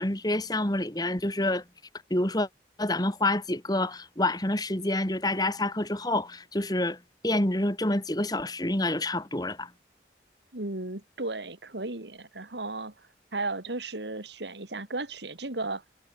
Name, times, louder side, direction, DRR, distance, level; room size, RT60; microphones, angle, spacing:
voice 1, 0.0-1.6 2.1-2.5 2.8-9.7, left 1 dB, 20° left, 2.6 m, -28 dB
voice 2, 10.5-15.8, right 2 dB, 80° right, 2.9 m, -35 dB
head